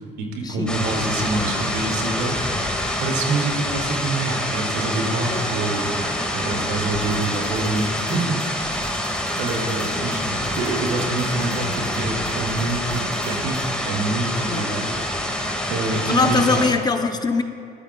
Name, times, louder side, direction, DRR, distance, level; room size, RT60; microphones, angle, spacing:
voice 1, 0.2-2.4 3.0-8.6 9.4-14.9 15.2-16.7, right 3 dB, 90° right, 1 dB, 2.4 m, -26 dB
sound 1, 0.7-16.7, left 1 dB, 5° left, 2.0 m, -26 dB
sound 2, 6.9-13.7, right 3 dB, 75° right, 3.1 m, -43 dB
voice 2, 16.1-17.4, left 4 dB, 25° left, 6 dB, 0.8 m, -22 dB
22.5 x 13.0 x 2.3 m, 2.4 s
cardioid pair, 110°, 17 cm